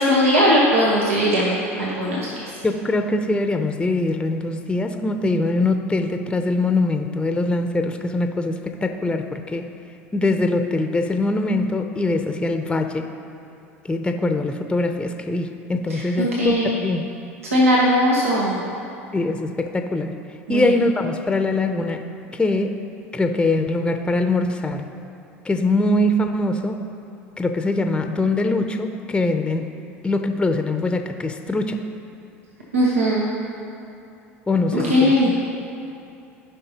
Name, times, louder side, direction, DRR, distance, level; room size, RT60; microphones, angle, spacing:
voice 1, 0.0-2.5 15.9-16.7 17.4-18.6 20.5-20.7 32.7-33.3 34.7-35.3, equal, 90° right, -5 dB, 1.2 m, -19 dB
voice 2, 2.6-9.7 10.1-13.1 13.8-17.1 19.1-20.1 20.5-22.0 22.3-22.8 23.1-24.8 25.4-26.9 27.4-29.7 30.0-31.9 34.5-35.3, left 2 dB, 15° left, 6 dB, 0.6 m, -22 dB
15.0 x 5.3 x 2.9 m, 2.8 s
hypercardioid pair, 75°, 7 cm